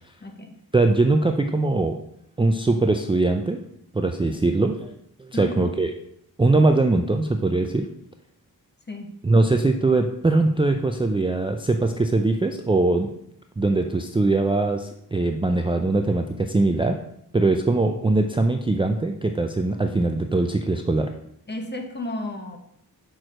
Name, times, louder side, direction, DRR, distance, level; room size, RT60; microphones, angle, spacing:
voice 1, 0.2-0.5 5.3-5.7 8.9-9.1 21.5-22.6, left 2 dB, 30° left, 4 dB, 1.2 m, -33 dB
voice 2, 0.7-2.0 2.4-3.6 3.9-4.9 5.2-5.9 6.4-7.8 9.2-13.1 13.6-16.9 17.3-21.1, right 2 dB, 15° right, 5 dB, 0.4 m, -21 dB
6.1 x 4.7 x 6.3 m, 0.72 s
wide cardioid pair, 145°, 37 cm